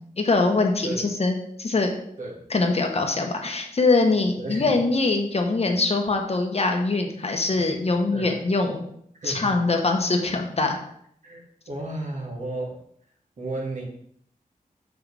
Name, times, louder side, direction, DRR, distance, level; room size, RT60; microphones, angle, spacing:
voice 1, 0.0-1.9 2.5-8.8 9.2-10.8, left 3 dB, 45° left, 3 dB, 1.1 m, -23 dB
voice 2, 2.2-2.5 4.4-4.8 8.1-8.4 9.2-9.5 10.2-10.3 11.2-12.8 13.4-13.8, right 2 dB, 60° right, -2 dB, 2.2 m, -33 dB
6.8 x 6.1 x 3.4 m, 0.67 s
wide cardioid pair, 105°, 14 cm